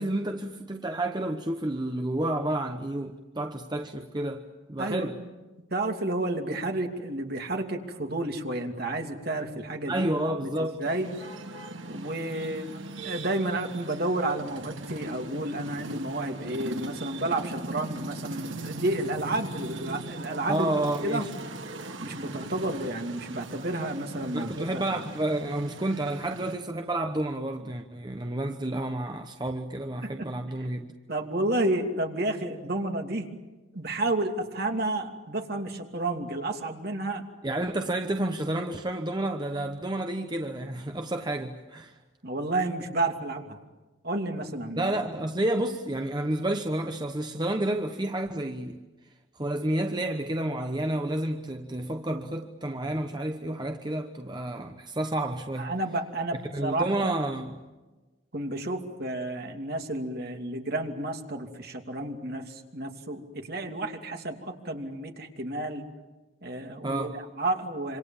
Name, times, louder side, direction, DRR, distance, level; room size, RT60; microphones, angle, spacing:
voice 1, 0.0-4.4 4.7-5.2 9.9-10.8 20.5-21.3 24.3-30.9 37.4-42.0 44.8-48.8 49.4-55.7 56.5-57.6 66.8-67.2, right 1 dB, 20° right, 1.1 m, -30 dB
voice 2, 4.8-5.3 5.7-10.1 10.4-11.1 11.9-12.7 13.0-20.7 21.0-21.3 22.0-25.0 30.0-30.3 31.1-33.3 33.7-37.2 42.2-43.6 44.0-44.9 55.6-57.1 58.3-65.9 66.4-67.1 67.4-68.0, right 2 dB, 55° right, 2.8 m, -31 dB
sound 1, 10.9-26.6, right 2 dB, 85° right, 2.0 m, -40 dB
27.0 x 26.0 x 7.2 m
head